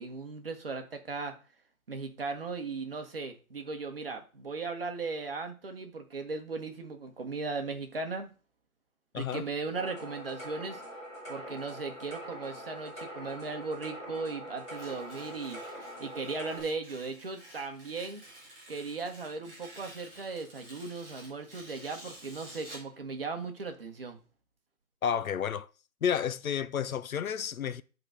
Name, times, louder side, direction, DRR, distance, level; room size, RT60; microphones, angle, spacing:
voice 1, 0.0-1.4 1.9-8.3 9.1-10.8 11.3-15.6 16.0-18.2 18.7-24.2, right 4 dB, 40° right, 1.2 m, -37 dB
voice 2, 9.1-9.4 25.0-25.7 26.0-27.8, left 8 dB, 70° left, 0.6 m, -31 dB
sound 1, 9.7-16.6, equal, 20° left, 4.0 m, -43 dB
Tearing, 14.6-22.9, right 1 dB, 20° right, 4.3 m, -51 dB
10.5 x 4.0 x 5.0 m
hypercardioid pair, 175°, 43 cm